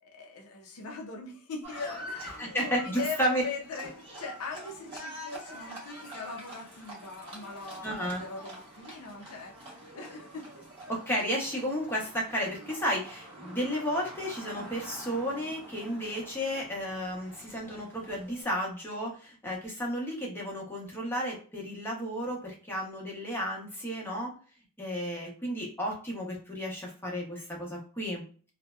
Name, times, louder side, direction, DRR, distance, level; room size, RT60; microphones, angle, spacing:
voice 1, 0.0-10.5, left 4 dB, 75° left, 0.5 m, -40 dB
Livestock farm animals working animals, 1.6-18.4, right 1 dB, 25° right, 0.9 m, -46 dB
voice 2, 2.4-3.4 7.8-8.2 10.9-24.3 24.8-28.2, equal, 10° left, 0.8 m, -33 dB
2.6 x 2.1 x 2.3 m
head